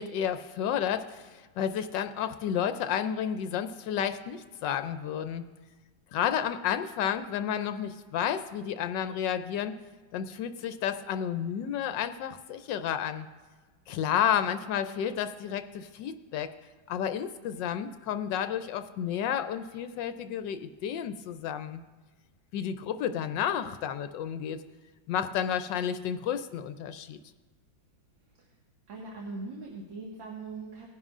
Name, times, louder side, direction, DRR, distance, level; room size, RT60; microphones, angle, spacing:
voice 1, 0.0-5.5 6.1-9.7 10.1-13.3 13.9-16.5 16.9-21.8 22.5-24.6 25.1-27.2, left 9 dB, 75° left, 10 dB, 1.2 m, -31 dB
voice 2, 28.9-30.9, right 3 dB, 85° right, -3 dB, 2.4 m, -40 dB
20.0 x 10.5 x 2.5 m, 1.4 s
omnidirectional pair, 2.0 m